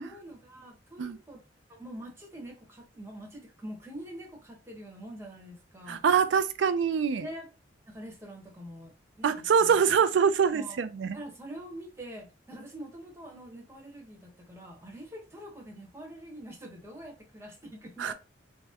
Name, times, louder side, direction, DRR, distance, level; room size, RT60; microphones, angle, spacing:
voice 1, 0.0-1.4 1.7-6.0 7.2-7.5 7.9-9.7 10.5-10.8 11.1-18.1, right 1 dB, 15° right, 1.0 m, -45 dB
voice 2, 5.9-7.3 9.2-11.2 18.0-18.1, right 6 dB, 70° right, 0.4 m, -24 dB
3.4 x 2.1 x 2.7 m
head